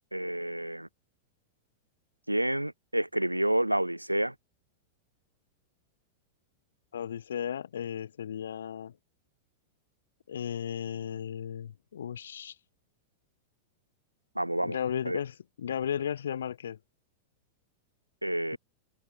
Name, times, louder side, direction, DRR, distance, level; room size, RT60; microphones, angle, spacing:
voice 1, 0.1-0.9 2.3-4.3 14.4-14.8 15.0-15.2 18.2-18.6, right 1 dB, 85° right, 0.5 m, -29 dB
voice 2, 6.9-8.9 10.3-12.5 14.6-16.8, left 9 dB, 65° left, 1.5 m, -35 dB
figure-of-eight pair, 90°, 0 cm